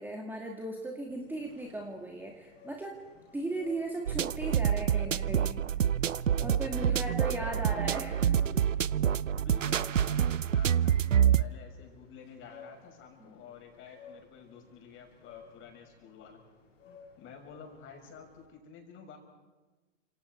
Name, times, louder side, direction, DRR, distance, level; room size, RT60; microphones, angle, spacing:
voice 1, 0.0-3.0 3.3-5.6 6.4-8.6 13.2-13.4, right 2 dB, 5° right, 1 dB, 2.3 m, -37 dB
sound 1, 1.0-18.5, left 5 dB, 80° left, 4.0 m, -56 dB
sound 2, 4.1-11.4, right 9 dB, 90° right, 0.7 m, -27 dB
voice 2, 6.8-8.2 9.3-16.4 16.8-19.2, left 6 dB, 35° left, 2 dB, 6.7 m, -51 dB
30.0 x 27.0 x 4.7 m, 1.2 s
hypercardioid pair, 110°, 37 cm